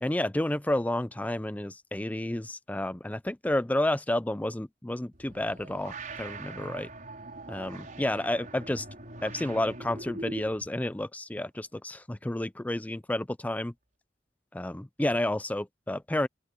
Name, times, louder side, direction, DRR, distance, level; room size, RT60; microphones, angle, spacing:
voice 1, 0.0-6.9 7.5-8.9 9.2-13.7 14.5-16.3, left 1 dB, 10° left, 0.4 m, -30 dB
sound 1, 5.1-10.7, right 2 dB, 50° right, 5.9 m, -42 dB
open air
head